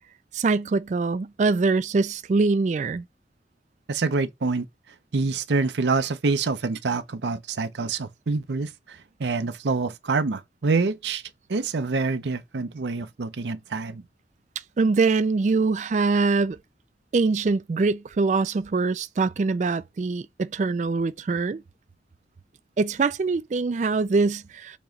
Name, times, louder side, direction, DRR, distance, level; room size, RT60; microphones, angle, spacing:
voice 1, 0.3-3.0 14.6-16.6 17.1-21.6 22.8-24.8, right 4 dB, 40° right, 0.3 m, -23 dB
voice 2, 3.9-4.7 5.1-11.2 11.5-14.0, right 4 dB, 80° right, 0.6 m, -26 dB
7.0 x 3.0 x 5.1 m
head